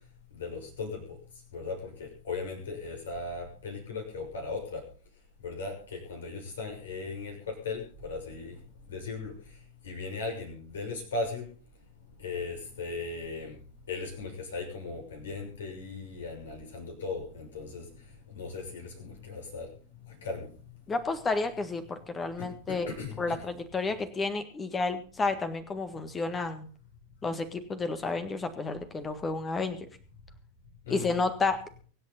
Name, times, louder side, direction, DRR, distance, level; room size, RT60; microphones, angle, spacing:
voice 1, 0.3-1.2 1.5-4.8 5.4-8.6 8.9-9.3 9.8-11.4 12.2-13.5 13.9-17.8 18.3-19.7 20.2-20.5 22.4-23.4 30.9-31.1, left 3 dB, 65° left, 2 dB, 6.3 m, -37 dB
voice 2, 20.9-22.9 23.2-26.7 27.2-29.8 30.9-31.6, left 3 dB, 20° left, 10 dB, 1.6 m, -31 dB
24.0 x 8.8 x 4.1 m, 0.42 s
figure-of-eight pair, 90°, 0 cm